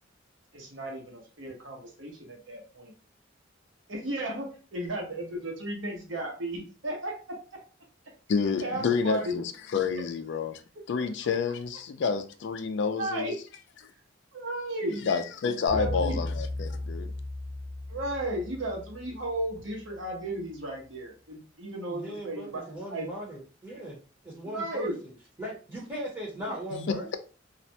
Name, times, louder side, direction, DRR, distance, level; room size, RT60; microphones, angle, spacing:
voice 1, 0.5-2.9 3.9-7.6 8.6-9.4 11.0-11.1 13.0-13.4 14.3-15.1 15.7-16.2 17.9-23.1 24.4-25.0 26.4-26.6, right 1 dB, 85° right, 0.9 m, -35 dB
voice 2, 8.3-10.6 10.9-13.3 15.1-17.1 26.7-26.9, left 5 dB, 65° left, 0.4 m, -29 dB
sound 1, 15.7-20.0, left 2 dB, 25° left, 0.8 m, -36 dB
voice 3, 21.9-24.0 24.2-25.1 25.4-27.2, equal, 15° right, 0.7 m, -38 dB
2.4 x 2.1 x 2.7 m
head